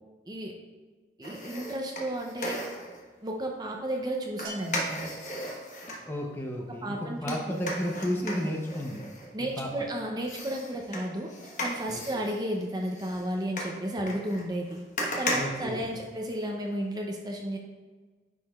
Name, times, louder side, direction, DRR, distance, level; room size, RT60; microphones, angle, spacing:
sound 1, 1.2-3.0 4.4-6.0 7.3-9.8 10.2-16.5 16.8-16.9, left 1 dB, 45° left, 1.1 m, -36 dB
voice 1, 1.2-2.6 3.2-5.1 6.8-7.4 9.3-11.3 11.6-14.8 15.2-17.6, right 1 dB, 20° right, 1 dB, 0.6 m, -33 dB
Bell, 4.4-5.8, right 4 dB, 60° right, 1.6 m, -44 dB
voice 2, 6.0-9.7 11.9-12.0 15.3-16.1, equal, 10° left, 0 dB, 0.6 m, -33 dB
9.8 x 4.8 x 2.3 m, 1.4 s
head